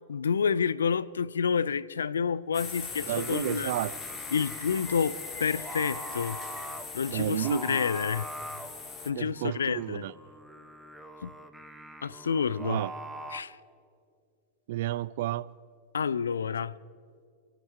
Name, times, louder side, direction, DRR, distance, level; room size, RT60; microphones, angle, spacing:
voice 1, 0.1-3.7 4.3-6.4 6.9-8.3 9.1-10.0 11.2-11.3 12.0-12.8 13.3-13.6 15.9-16.8, left 6 dB, 70° left, 0.4 m, -29 dB
sound 1, 2.5-9.1, left 4 dB, 25° left, 1.8 m, -40 dB
Singing, 2.9-13.4, right 1 dB, ahead, 1.0 m, -44 dB
voice 2, 3.1-4.2 7.1-7.8 9.2-10.1 12.6-12.9 14.7-15.5, right 14 dB, 55° right, 0.4 m, -32 dB
27.0 x 9.1 x 4.5 m
figure-of-eight pair, 90°, 0 cm